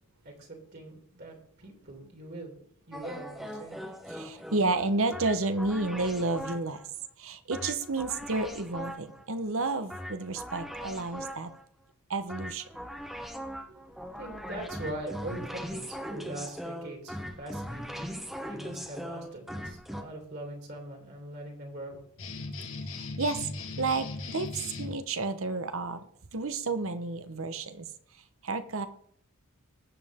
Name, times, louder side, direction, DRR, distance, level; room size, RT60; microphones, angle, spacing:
voice 1, 0.2-2.6 2.9-3.8 13.6-13.9 14.1-18.1 18.4-22.0, right 1 dB, 45° right, 1 dB, 2.9 m, -42 dB
sound 1, 2.9-6.8 7.5-9.2 9.9-11.6 12.3-20.0, equal, ahead, 1.1 m, -40 dB
voice 2, 4.1-6.8 7.2-11.5 12.1-12.7 23.0-23.4 23.8-26.0 26.3-27.9 28.4-28.9, right 3 dB, 65° right, 10 dB, 1.1 m, -31 dB
sound 2, 22.2-24.9, left 3 dB, 60° left, 1.9 m, -38 dB
20.0 x 7.6 x 3.7 m, 0.65 s
head